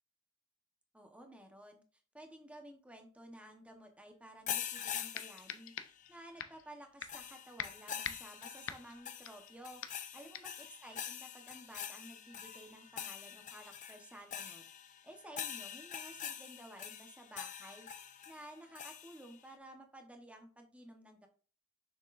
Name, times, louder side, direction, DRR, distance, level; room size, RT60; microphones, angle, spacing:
voice 1, 0.9-1.8 2.1-5.7 6.1-9.8 10.1-17.9 18.3-21.3, right 1 dB, 5° right, 4 dB, 1.0 m, -54 dB
sound 1, 4.5-6.1 7.1-19.4, left 9 dB, 40° left, 0.5 m, -45 dB
sound 2, 4.6-4.7 5.1-6.1 6.4-6.6 7.0-7.3 7.6-9.5 9.8-10.1 10.3-10.6, left 8 dB, 85° left, 0.6 m, -44 dB
6.6 x 6.0 x 2.5 m, 0.40 s
head